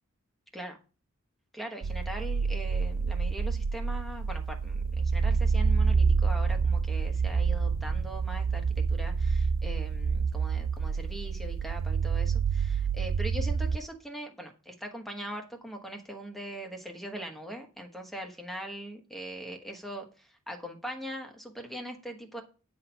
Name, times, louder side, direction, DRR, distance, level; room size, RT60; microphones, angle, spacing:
voice 1, 1.5-22.4, equal, ahead, 3 dB, 1.1 m, -41 dB
sound 1, 1.8-13.8, right 5 dB, 65° right, 0.5 m, -28 dB
9.5 x 4.3 x 5.5 m, 0.35 s
head